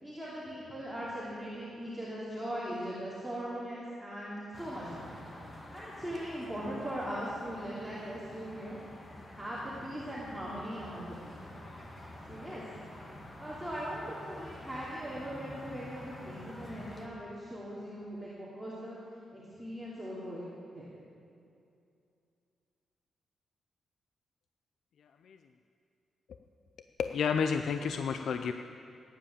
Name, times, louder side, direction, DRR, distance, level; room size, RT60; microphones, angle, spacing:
voice 1, 0.0-5.1 5.7-8.8 9.4-11.5 12.3-12.6 13.4-19.0 19.3-21.0, equal, ahead, -9 dB, 2.9 m, -40 dB
sound 1, 4.5-17.1, left 1 dB, 25° left, 2.0 m, -48 dB
voice 2, 27.0-28.5, left 6 dB, 70° left, 7 dB, 0.5 m, -30 dB
18.0 x 10.0 x 7.3 m, 2.6 s
cardioid pair, 125°, 0 cm